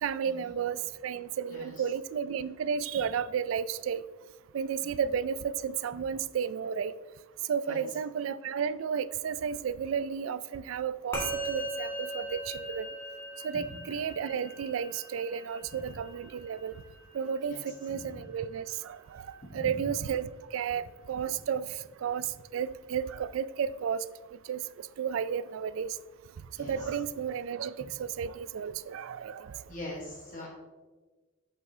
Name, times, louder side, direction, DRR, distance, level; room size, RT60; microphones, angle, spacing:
voice 1, 0.0-4.0 4.5-6.9 7.5-12.9 13.4-16.7 17.1-21.7 22.0-22.3 22.5-24.0 24.5-26.0 26.6-29.6, right 7 dB, 80° right, 16 dB, 0.3 m, -33 dB
Musical instrument, 11.1-20.7, equal, 15° left, 1.9 m, -41 dB
voice 2, 26.5-27.0 29.7-30.5, left 1 dB, 40° left, -3 dB, 1.2 m, -42 dB
8.0 x 7.2 x 2.7 m, 1.3 s
head